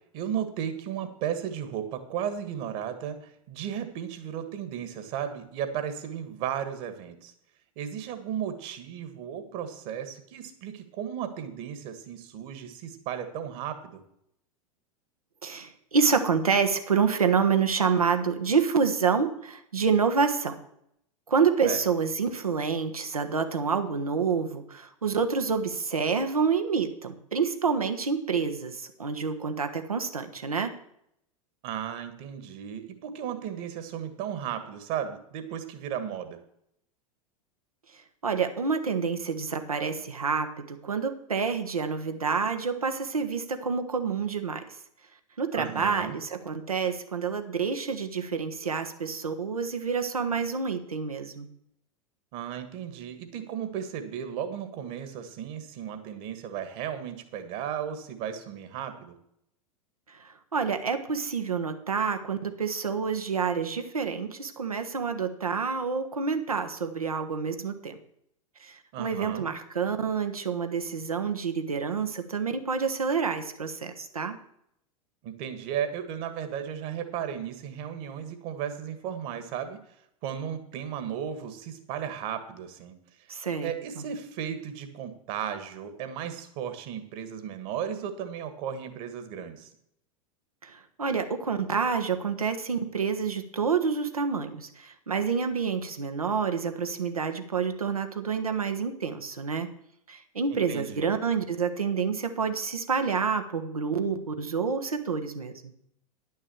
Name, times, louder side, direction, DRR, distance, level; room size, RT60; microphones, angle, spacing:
voice 1, 0.1-7.3 7.8-14.0 21.6-21.8 31.6-36.4 45.5-46.2 52.3-59.1 68.9-69.5 75.2-79.8 80.2-83.0 83.6-89.7 100.7-101.1, right 9 dB, 45° right, 8 dB, 1.8 m, -35 dB
voice 2, 15.4-20.5 21.3-30.7 38.2-44.6 45.4-51.5 60.1-68.0 68.6-74.4 83.3-84.0 90.6-99.7 100.1-105.5, right 5 dB, 80° right, 6 dB, 1.3 m, -28 dB
10.5 x 6.4 x 7.2 m, 0.73 s
figure-of-eight pair, 90°, 19 cm